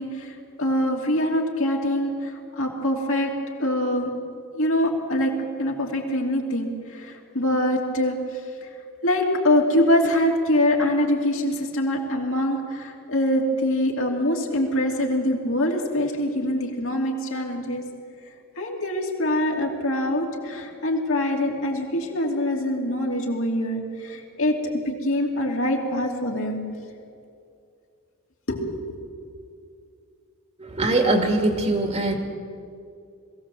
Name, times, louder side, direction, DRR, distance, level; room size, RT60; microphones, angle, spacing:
voice 1, 0.0-3.3 3.6-4.1 4.5-5.3 5.6-8.7 9.0-17.8 18.6-26.6 28.5-28.8, left 1 dB, 65° left, 0 dB, 2.9 m, -24 dB
voice 2, 30.6-32.1, right 2 dB, 30° right, 4 dB, 2.2 m, -22 dB
21.5 x 16.0 x 7.8 m, 2.4 s
head